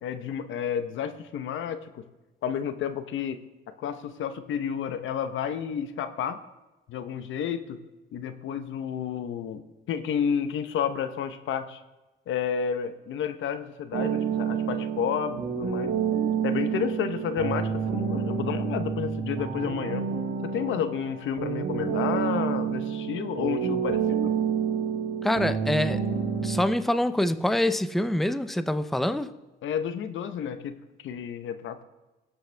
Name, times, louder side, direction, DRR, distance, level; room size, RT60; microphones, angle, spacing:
voice 1, 0.0-2.0 2.4-3.4 3.8-6.4 6.9-7.8 8.1-11.8 12.3-15.9 16.4-20.0 20.4-24.3 29.6-31.8, left 8 dB, 75° left, 10 dB, 1.0 m, -31 dB
sound 1, 13.9-26.6, right 7 dB, 75° right, 2.0 m, -29 dB
voice 2, 25.2-26.0 26.4-29.3, left 1 dB, ahead, 12 dB, 0.6 m, -25 dB
20.0 x 8.1 x 3.4 m, 1.1 s
cardioid pair, 90°, 20 cm